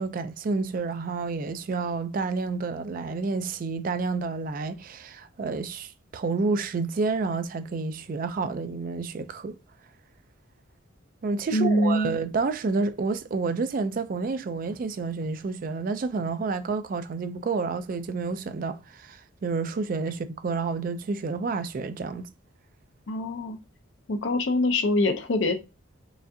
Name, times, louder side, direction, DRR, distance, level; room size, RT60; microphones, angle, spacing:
voice 1, 0.0-9.6 11.2-22.3, right 4 dB, 45° right, 0.3 m, -29 dB
voice 2, 11.5-12.1 23.1-23.6 24.1-25.5, left 1 dB, 60° left, 0.5 m, -24 dB
4.8 x 2.5 x 2.6 m
head